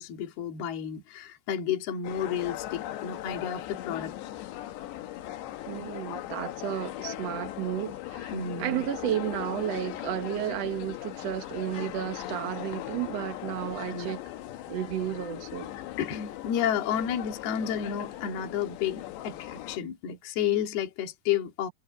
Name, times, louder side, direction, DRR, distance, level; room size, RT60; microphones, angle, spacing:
voice 1, 0.0-4.1 8.3-8.8 13.8-14.1 15.7-21.7, left 9 dB, 70° left, 4.2 m, -31 dB
sound 1, 2.0-19.8, left 14 dB, 90° left, 3.5 m, -39 dB
voice 2, 5.7-8.3 8.6-14.2 14.7-15.7, right 11 dB, 65° right, 1.6 m, -32 dB
omnidirectional pair, 4.8 m